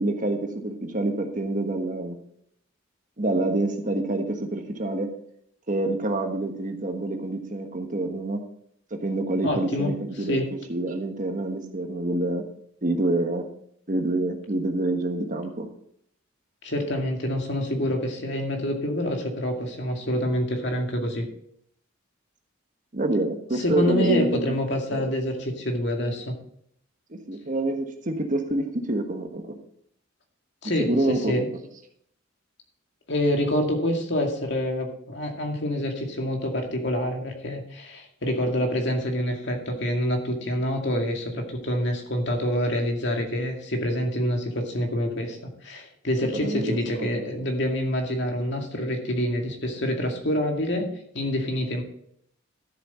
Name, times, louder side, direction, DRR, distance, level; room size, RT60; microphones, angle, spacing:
voice 1, 0.0-2.2 3.2-5.1 5.7-8.4 8.9-10.4 10.7-12.4 12.8-13.5 13.9-15.7 22.9-24.5 24.9-25.1 27.1-29.6 30.9-31.3 46.3-47.2, right 2 dB, 40° right, 5 dB, 1.3 m, -27 dB
voice 2, 9.4-9.9 10.3-10.5 16.6-21.3 23.6-26.3 30.6-31.4 33.1-45.4 45.6-50.9 51.1-51.8, equal, 60° left, 2 dB, 2.2 m, -26 dB
12.5 x 7.6 x 4.3 m, 0.67 s
head